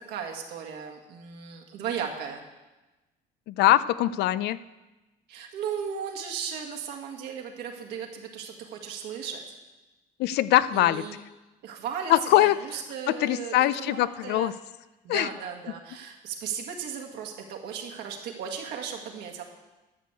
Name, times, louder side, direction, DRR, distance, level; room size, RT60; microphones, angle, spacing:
voice 1, 0.1-2.4 5.3-9.4 10.7-11.2 11.6-14.6 15.0-19.4, right 7 dB, 85° right, 1 dB, 1.9 m, -36 dB
voice 2, 3.5-4.6 10.2-11.0 12.1-12.6 13.1-14.5 15.1-15.3, left 14 dB, 80° left, 16 dB, 0.5 m, -22 dB
12.0 x 6.3 x 8.3 m, 1.1 s
cardioid pair, 110°, 17 cm